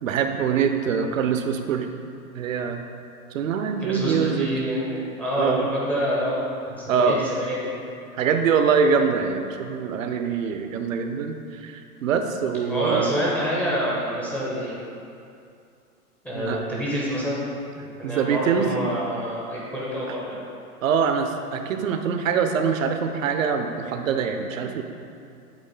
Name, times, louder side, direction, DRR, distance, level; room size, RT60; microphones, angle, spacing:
voice 1, 0.0-1.9 2.4-2.8 3.3-4.5 5.4-5.7 6.9-7.2 8.2-13.1 16.3-16.6 18.0-18.7 20.8-24.8, right 6 dB, 60° right, 6 dB, 0.7 m, -24 dB
voice 2, 3.8-6.4 6.7-7.8 12.7-14.7 16.2-17.4 17.7-20.4, equal, 5° left, -7 dB, 0.5 m, -27 dB
8.1 x 3.8 x 3.7 m, 2.5 s
figure-of-eight pair, 115°, 46 cm